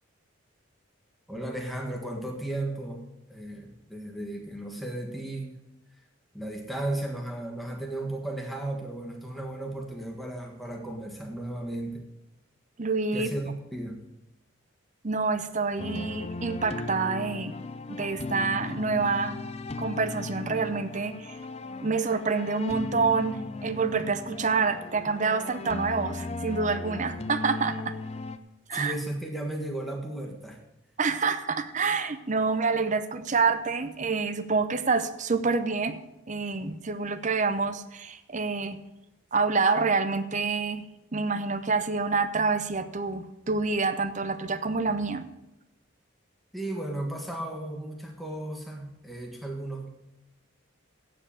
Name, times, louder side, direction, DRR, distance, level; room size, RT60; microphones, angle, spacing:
voice 1, 1.3-3.0 3.3-5.5 6.3-12.0 13.1-14.0 28.7-30.6 46.5-49.9, right 1 dB, ahead, 0 dB, 1.5 m, -35 dB
voice 2, 12.8-13.3 15.0-17.5 17.9-19.4 19.8-21.4 21.8-27.9 28.7-28.9 31.0-36.0 36.3-38.8 39.3-40.8 41.1-45.2, right 4 dB, 35° right, 12 dB, 0.7 m, -27 dB
sound 1, 15.8-28.4, left 3 dB, 30° left, 0.5 m, -37 dB
8.9 x 7.6 x 8.6 m, 0.92 s
head